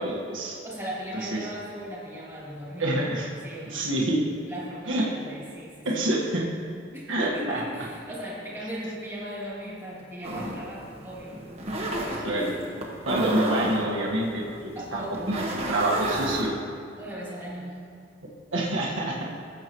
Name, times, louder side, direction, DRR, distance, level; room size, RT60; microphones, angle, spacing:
voice 1, 0.0-0.6 1.2-1.5 2.8-3.3 3.6-4.2 4.9-5.1 5.9-6.5 7.1-7.6 12.2-12.5 13.0-15.4 15.7-16.5 18.5-19.2, right 1 dB, 85° right, -4 dB, 1.6 m, -27 dB
voice 2, 0.6-2.9 3.4-3.9 4.5-6.0 6.9-11.4 12.1-12.6 14.8-15.3 17.0-17.9, equal, 10° right, -6 dB, 2.4 m, -37 dB
sound 1, 10.2-16.5, right 1 dB, 35° right, 1.3 m, -31 dB
17.0 x 7.6 x 3.1 m, 2.3 s
head